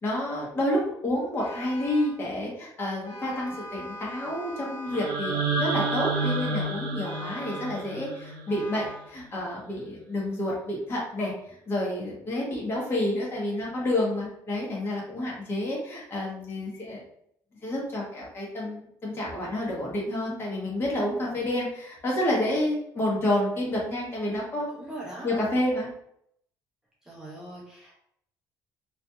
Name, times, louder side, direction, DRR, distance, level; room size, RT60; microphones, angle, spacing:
voice 1, 0.0-17.0 17.6-24.9 25.2-25.9, left 1 dB, 30° left, -4 dB, 0.9 m, -29 dB
Vehicle horn car horn honking, 1.3-2.2 3.0-5.2 5.7-6.6 7.0-7.9 8.5-9.1, equal, 85° left, 0.6 m, -41 dB
sound 1, 4.9-8.9, right 3 dB, 85° right, 0.6 m, -30 dB
voice 2, 24.7-25.4 27.0-27.9, right 1 dB, 10° right, -5 dB, 0.4 m, -41 dB
2.8 x 2.4 x 2.2 m, 0.72 s
cardioid pair, 150°, 8 cm